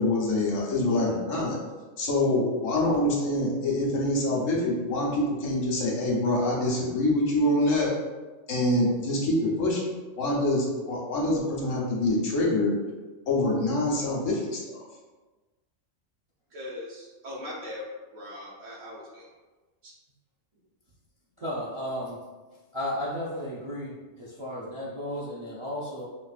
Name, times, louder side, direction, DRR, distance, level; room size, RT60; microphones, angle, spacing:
voice 1, 0.0-1.6 2.0-7.9 8.5-9.8 10.2-12.7 13.3-14.8, left 1 dB, 85° left, -3 dB, 1.3 m, -25 dB
voice 2, 16.5-17.8 18.1-19.2 19.8-19.9, left 1 dB, 75° right, -4 dB, 1.3 m, -40 dB
voice 3, 21.4-22.2 22.7-26.0, equal, 45° right, -6 dB, 0.4 m, -34 dB
5.1 x 2.2 x 2.4 m, 1.2 s
omnidirectional pair, 1.3 m